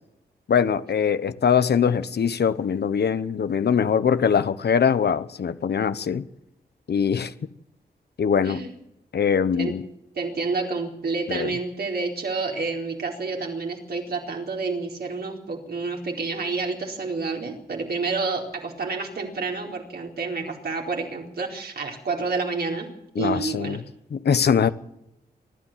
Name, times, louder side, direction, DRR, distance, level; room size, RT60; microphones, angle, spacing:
voice 1, 0.5-6.2 6.9-7.3 8.2-8.6 9.1-9.9 11.3-11.5 23.2-23.8 24.1-24.7, left 7 dB, 75° left, 1.1 m, -22 dB
voice 2, 10.2-22.9 23.2-23.8, right 4 dB, 70° right, 4.3 m, -29 dB
27.0 x 13.0 x 7.5 m
wide cardioid pair, 145°, 17 cm